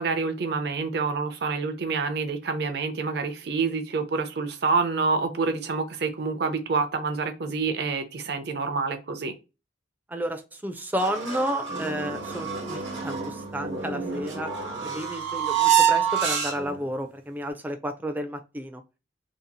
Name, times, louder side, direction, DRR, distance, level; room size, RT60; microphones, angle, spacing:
voice 1, 0.0-9.3, right 4 dB, 60° right, 0.6 m, -27 dB
voice 2, 10.1-14.5 14.8-18.8, equal, 10° right, 0.4 m, -31 dB
sound 1, 11.0-16.9, right 8 dB, 80° right, 1.0 m, -27 dB
2.8 x 2.3 x 2.6 m
head